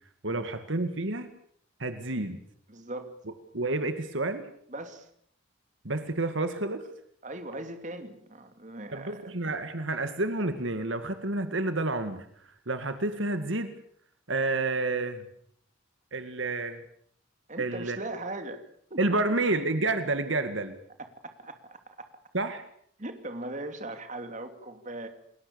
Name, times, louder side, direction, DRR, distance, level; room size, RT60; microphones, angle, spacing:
voice 1, 0.2-1.3 1.8-2.4 3.5-4.4 5.8-6.8 8.9-12.3 12.7-13.7 14.3-15.3 16.1-16.8 17.6-18.0 19.0-20.7 22.3-22.6, right 2 dB, 65° right, 9 dB, 2.0 m, -29 dB
voice 2, 2.7-3.2 4.7-5.1 7.2-9.3 17.5-18.6 18.9-19.0 21.0-22.1 23.0-25.1, right 2 dB, 35° right, 7 dB, 2.8 m, -39 dB
29.0 x 21.0 x 7.0 m, 0.64 s
head